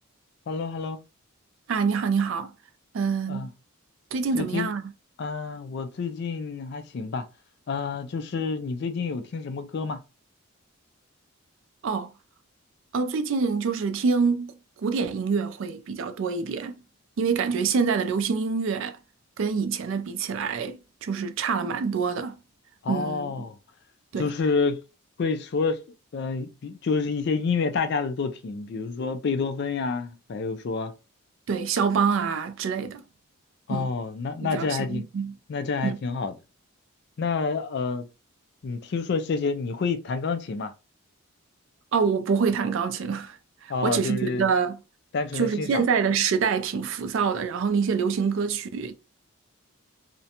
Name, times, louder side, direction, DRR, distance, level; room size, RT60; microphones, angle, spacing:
voice 1, 0.5-1.0 3.3-3.5 4.3-4.7 5.2-7.3 7.7-10.0 22.8-23.6 24.2-24.8 25.2-25.8 26.1-30.9 33.7-35.0 35.5-36.3 37.2-38.1 38.6-40.7 43.7-44.5 45.1-45.8, left 4 dB, 50° left, 0.3 m, -28 dB
voice 2, 1.7-2.5 2.9-3.5 4.1-4.8 11.8-12.1 12.9-16.8 17.2-19.0 19.4-22.4 22.9-23.5 24.1-24.3 31.5-33.0 33.7-33.9 34.4-35.4 35.8-36.0 41.9-44.8 45.3-48.9, right 5 dB, 60° right, 0.3 m, -26 dB
2.5 x 2.1 x 2.8 m
head